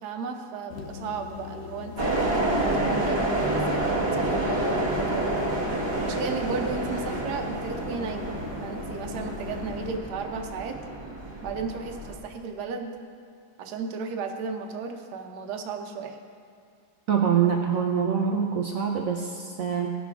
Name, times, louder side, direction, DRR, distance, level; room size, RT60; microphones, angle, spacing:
voice 1, 0.0-2.4 2.9-5.4 6.0-10.8 11.4-12.9 13.6-16.2, right 5 dB, 60° right, 4 dB, 1.2 m, -35 dB
sound 1, 0.7-10.0, left 7 dB, 90° left, 1.6 m, -41 dB
sound 2, 2.0-12.2, right 1 dB, 20° right, 0.7 m, -28 dB
voice 2, 17.1-19.9, right 7 dB, 85° right, 1 dB, 0.7 m, -25 dB
17.0 x 6.3 x 3.5 m, 2.3 s
omnidirectional pair, 2.3 m